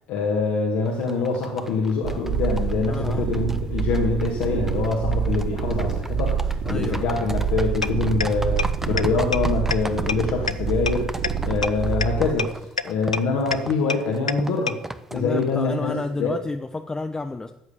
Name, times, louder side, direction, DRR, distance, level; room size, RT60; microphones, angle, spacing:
voice 1, 0.1-12.6 12.8-14.8 15.1-16.4, left 4 dB, 60° left, 0 dB, 2.1 m, -25 dB
sound 1, 0.8-15.8, right 1 dB, 10° right, 1.0 m, -37 dB
sound 2, 2.0-12.3, right 6 dB, 55° right, 4.2 m, -26 dB
voice 2, 2.9-3.3 6.6-7.1 15.1-17.5, left 3 dB, 20° left, 6 dB, 0.9 m, -30 dB
sound 3, 7.8-7.9 8.2-8.3 8.6-8.7 9.0-9.1 9.3-9.4 9.7-9.8 10.1-10.2 10.5-10.6 10.9-11.0 11.2-11.3 11.6-11.7 12.0-12.1 12.4-12.5 12.8-12.9 13.1-13.2 13.5-13.6 13.9-14.0 14.3-14.4 14.7-14.8, left 5 dB, 85° left, 0.4 m, -23 dB
13.5 x 8.2 x 7.3 m, 0.86 s
figure-of-eight pair, 50°, 4 cm